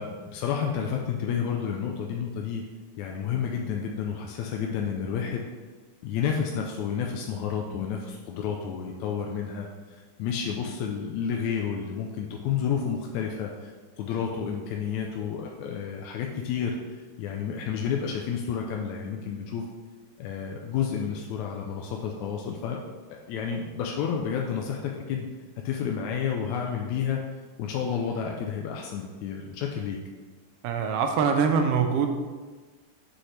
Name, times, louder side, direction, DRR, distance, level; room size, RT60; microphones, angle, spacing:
voice 1, 0.0-2.6 3.0-5.5 6.0-16.8 17.2-19.6 20.2-22.8 23.1-25.3 25.7-27.2 27.6-30.0, left 7 dB, 85° left, 0 dB, 1.9 m, -30 dB
voice 2, 30.6-32.1, right 6 dB, 75° right, 5 dB, 1.4 m, -23 dB
7.7 x 6.3 x 3.3 m, 1.4 s
omnidirectional pair, 3.3 m